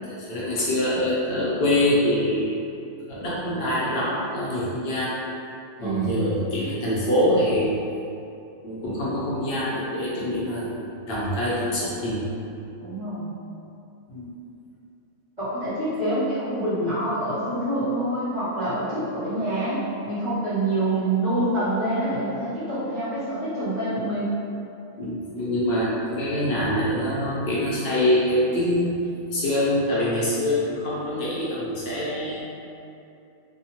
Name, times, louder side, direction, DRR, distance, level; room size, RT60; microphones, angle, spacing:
voice 1, 0.0-2.5 3.1-5.2 5.8-7.7 8.6-12.3 14.1-14.3 25.0-29.0 29.3-32.4, left 1 dB, 55° left, -8 dB, 0.7 m, -25 dB
voice 2, 5.8-6.3 12.8-13.4 15.4-24.3, right 1 dB, 30° right, -15 dB, 1.0 m, -26 dB
2.8 x 2.1 x 2.8 m, 2.7 s
omnidirectional pair, 1.6 m